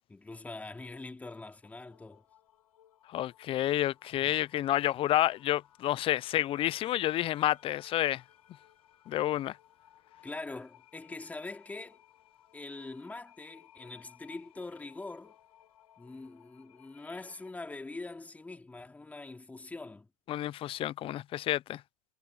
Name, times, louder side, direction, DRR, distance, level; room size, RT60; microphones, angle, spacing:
voice 1, 0.1-2.2 10.2-12.0 12.5-15.3 16.0-20.1, left 3 dB, 10° left, 3.7 m, -43 dB
sound 1, 1.6-17.5, left 11 dB, 70° left, 7.7 m, -60 dB
voice 2, 3.1-8.2 9.1-9.6 20.3-21.8, left 13 dB, 30° left, 0.9 m, -29 dB
hypercardioid pair, 110°, 19 cm